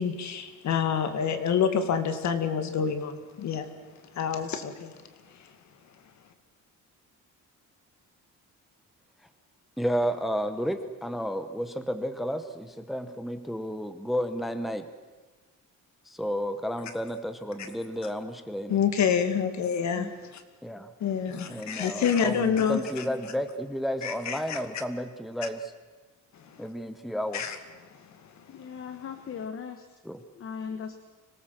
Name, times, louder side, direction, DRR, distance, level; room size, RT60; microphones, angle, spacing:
voice 1, 0.0-3.7 4.1-4.9 18.7-20.4 21.0-23.0 24.0-24.6 26.4-26.6 27.3-27.6, left 7 dB, 60° left, 9 dB, 2.2 m, -27 dB
voice 2, 9.8-14.9 16.0-18.8 20.0-20.1 20.6-20.9 21.4-25.7 26.6-27.4 30.0-30.2, equal, ahead, 9 dB, 0.9 m, -32 dB
voice 3, 28.5-29.9 30.4-31.0, left 6 dB, 40° left, 8 dB, 1.3 m, -38 dB
25.0 x 18.5 x 7.6 m, 1.3 s
cardioid pair, 165°, 32 cm